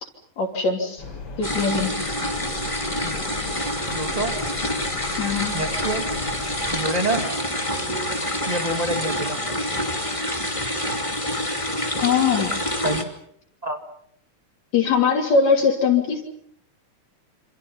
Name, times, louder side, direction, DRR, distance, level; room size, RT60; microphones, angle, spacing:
voice 1, 0.4-1.0 1.4-2.4 5.2-5.6 12.0-12.5 14.7-16.2, left 5 dB, 65° left, 1 dB, 4.3 m, -21 dB
sound 1, 1.0-6.8, left 3 dB, 40° left, 4.0 m, -37 dB
sound 2, 1.4-13.0, left 1 dB, 10° left, 2.3 m, -27 dB
voice 2, 3.9-4.4 5.5-6.1 6.7-7.3 8.5-9.4 12.8-13.1 13.6-13.8, right 1 dB, 15° right, 5 dB, 2.3 m, -27 dB
28.0 x 27.0 x 5.6 m, 0.68 s
omnidirectional pair, 3.3 m